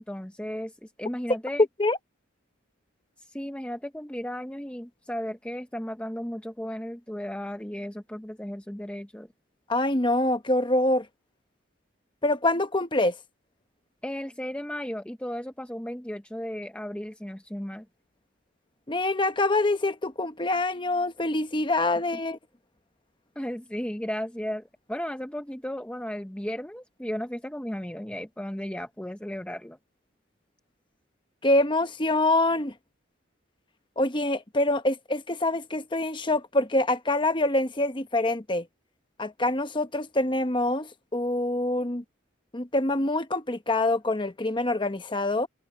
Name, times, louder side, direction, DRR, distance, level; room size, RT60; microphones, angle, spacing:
voice 1, 0.0-1.7 3.2-9.3 14.0-17.9 23.4-29.8, equal, 5° left, 0.7 m, -35 dB
voice 2, 9.7-11.0 12.2-13.1 18.9-22.4 31.4-32.7 34.0-38.6 39.2-42.0 42.5-45.5, left 2 dB, 25° left, 1.0 m, -25 dB
head